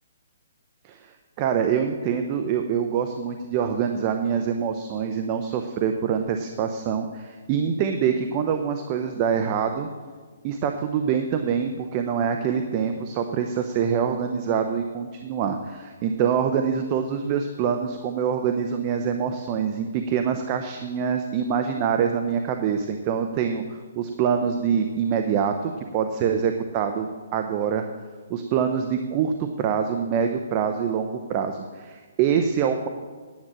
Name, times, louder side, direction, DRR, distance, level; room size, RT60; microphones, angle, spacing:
voice 1, 0.8-9.9 10.4-27.8 28.3-32.9, right 7 dB, 25° right, 6 dB, 0.7 m, -25 dB
10.0 x 7.9 x 7.5 m, 1.5 s
hypercardioid pair, 165°, 0 cm